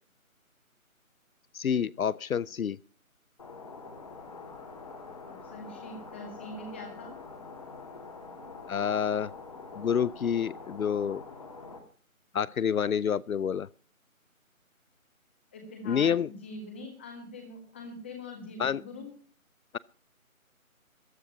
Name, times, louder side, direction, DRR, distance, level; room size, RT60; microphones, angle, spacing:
voice 1, 1.5-2.8 8.7-9.3 9.8-11.2 12.3-13.7 15.9-16.3 18.6-18.8, left 7 dB, 75° left, 22 dB, 0.6 m, -28 dB
sound 1, 3.4-11.8, left 4 dB, 25° left, 1.9 m, -45 dB
voice 2, 5.2-7.1 15.5-19.1, left 2 dB, 10° left, 2 dB, 1.5 m, -43 dB
14.5 x 10.5 x 5.5 m, 0.41 s
figure-of-eight pair, 170°, 42 cm